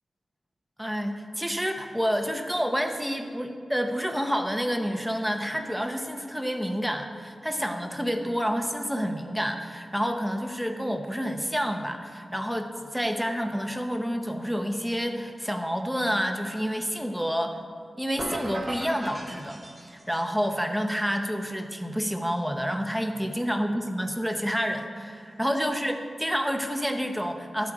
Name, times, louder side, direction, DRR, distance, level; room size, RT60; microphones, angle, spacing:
voice 1, 0.8-17.6 18.0-27.7, equal, ahead, 5 dB, 0.8 m, -29 dB
sound 1, 18.2-20.3, right 1 dB, 35° right, 1.4 m, -36 dB
13.0 x 8.5 x 4.8 m, 2.3 s
wide cardioid pair, 110°, 0 cm